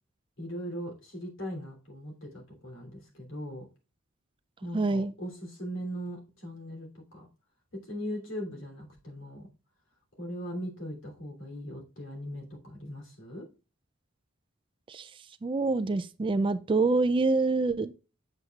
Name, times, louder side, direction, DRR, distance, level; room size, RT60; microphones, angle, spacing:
voice 1, 0.4-3.6 4.6-7.3 7.9-9.5 10.2-13.4, equal, 70° left, 3.0 m, -39 dB
voice 2, 4.7-5.1 14.9-15.1 15.4-17.9, right 3 dB, 25° right, 0.3 m, -26 dB
7.7 x 7.4 x 2.3 m
head